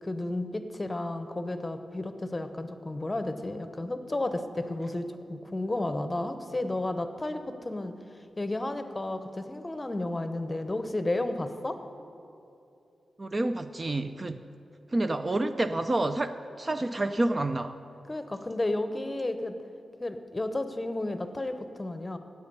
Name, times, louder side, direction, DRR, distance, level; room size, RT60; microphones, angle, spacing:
voice 1, 0.0-7.9 8.4-11.8 18.1-19.5 20.0-22.2, left 2 dB, 20° left, 8 dB, 0.8 m, -32 dB
voice 2, 13.2-14.4 14.9-17.7, right 2 dB, 30° right, 9 dB, 0.4 m, -28 dB
16.5 x 8.0 x 5.4 m, 2.7 s
wide cardioid pair, 100°, 0 cm